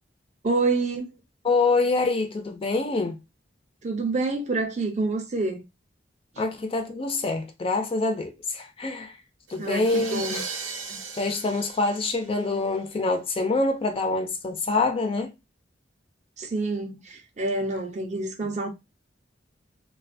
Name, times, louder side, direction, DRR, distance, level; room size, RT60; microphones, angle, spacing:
voice 1, 0.4-1.1 3.8-5.6 9.6-10.4 10.9-11.0 16.4-18.7, right 3 dB, 40° right, 0.5 m, -27 dB
voice 2, 1.4-3.2 6.4-9.1 9.5-10.4 11.1-15.3, left 3 dB, 30° left, 0.3 m, -25 dB
sound 1, 9.5-12.8, right 4 dB, 90° right, 0.6 m, -37 dB
2.3 x 2.1 x 2.5 m
head